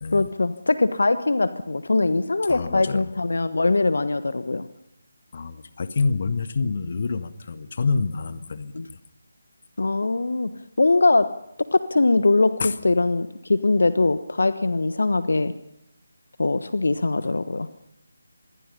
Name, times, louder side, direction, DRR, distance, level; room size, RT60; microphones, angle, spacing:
voice 1, 0.1-4.7 8.7-8.9 9.8-10.5 10.8-11.3 11.6-12.5 12.8-15.5 16.4-17.7, left 3 dB, 60° left, 13 dB, 1.2 m, -21 dB
voice 2, 2.5-3.1 5.3-9.0 12.6-12.7 17.2-17.3, left 4 dB, 40° left, 12 dB, 1.6 m, -27 dB
26.5 x 21.5 x 5.6 m, 0.82 s
figure-of-eight pair, 155°, 0 cm